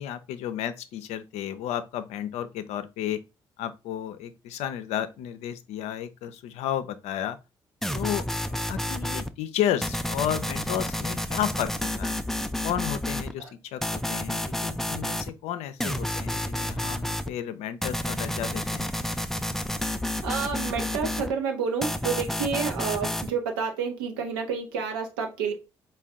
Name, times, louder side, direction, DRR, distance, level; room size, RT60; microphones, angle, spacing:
voice 1, 0.0-3.2 3.6-7.4 7.9-12.2 12.6-13.4 13.7-18.9, left 11 dB, 70° left, 0.4 m, -32 dB
sound 1, 7.8-9.3 9.8-13.3 13.8-15.3 15.8-17.3 17.8-21.3 21.8-23.3, left 1 dB, 5° left, 0.4 m, -30 dB
voice 2, 20.2-25.5, right 6 dB, 85° right, 0.7 m, -29 dB
4.3 x 2.2 x 3.5 m
hypercardioid pair, 40°, 12 cm